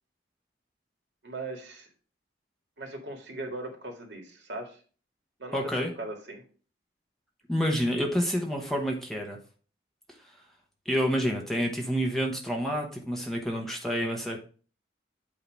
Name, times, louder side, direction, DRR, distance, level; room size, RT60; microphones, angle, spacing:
voice 1, 1.2-1.9 2.8-4.8 5.4-6.4, right 2 dB, 75° right, 2 dB, 1.9 m, -39 dB
voice 2, 5.5-5.9 7.5-9.4 10.8-14.4, equal, ahead, 0 dB, 1.0 m, -28 dB
8.5 x 2.8 x 6.1 m, 0.40 s
head